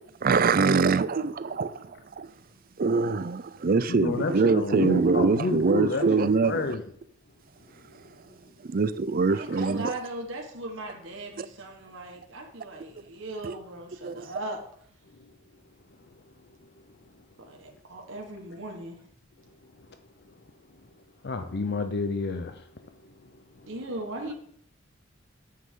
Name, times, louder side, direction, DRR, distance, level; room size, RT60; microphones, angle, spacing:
voice 1, 0.2-1.9 2.2-2.3 2.8-6.7 8.6-9.9 11.4-11.5 13.4-13.6 14.0-14.2, right 4 dB, 45° right, 0.5 m, -24 dB
voice 2, 3.9-6.8 21.2-22.5 24.2-24.3, left 3 dB, 55° left, 0.7 m, -30 dB
voice 3, 9.3-14.6 17.5-19.0 23.7-24.3, right 2 dB, 70° right, 1.5 m, -38 dB
9.5 x 7.8 x 3.8 m
head